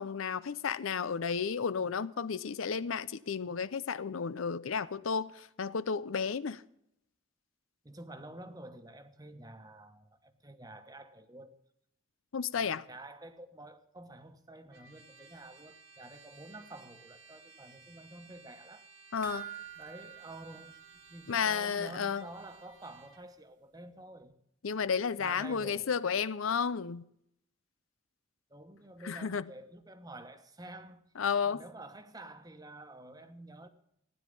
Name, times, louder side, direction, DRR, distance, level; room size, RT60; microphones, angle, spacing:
voice 1, 0.0-6.6 12.3-12.9 19.1-19.5 21.3-22.3 24.6-27.0 29.0-29.4 31.2-31.6, left 6 dB, 80° left, 0.6 m, -32 dB
voice 2, 7.8-11.6 12.5-18.9 19.8-20.8 21.1-24.3 25.2-25.9 28.5-31.0 31.4-33.7, right 2 dB, 20° right, 1.2 m, -49 dB
Trumpet, 14.7-23.2, right 4 dB, 75° right, 1.6 m, -58 dB
sound 1, 19.2-21.8 22.1-22.2 22.6-22.7, right 10 dB, 40° right, 0.8 m, -47 dB
16.0 x 10.0 x 5.3 m
head